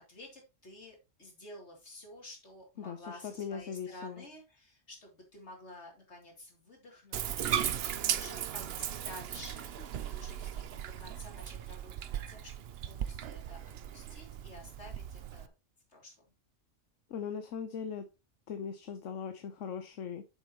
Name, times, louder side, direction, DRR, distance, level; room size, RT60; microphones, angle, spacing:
voice 1, 0.0-7.6 7.9-13.6 13.9-15.5 15.9-16.3, left 1 dB, 60° left, 3.0 m, -51 dB
voice 2, 2.8-4.3 17.1-18.1 18.5-20.2, left 7 dB, 75° left, 1.2 m, -39 dB
Bathtub (filling or washing), 7.1-15.5, right 10 dB, 60° right, 0.8 m, -37 dB
8.3 x 7.0 x 3.0 m
omnidirectional pair, 1.3 m